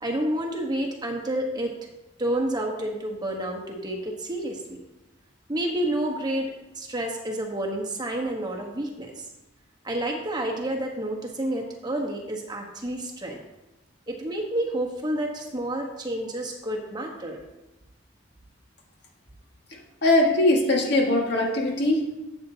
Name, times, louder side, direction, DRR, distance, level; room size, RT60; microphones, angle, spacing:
voice 1, 0.0-1.7 2.2-4.8 5.5-9.2 9.8-13.4 14.1-17.4, right 1 dB, 20° right, 1 dB, 1.2 m, -29 dB
voice 2, 19.7-22.2, left 1 dB, 60° left, 0 dB, 1.8 m, -22 dB
12.0 x 8.0 x 2.8 m, 1.0 s
head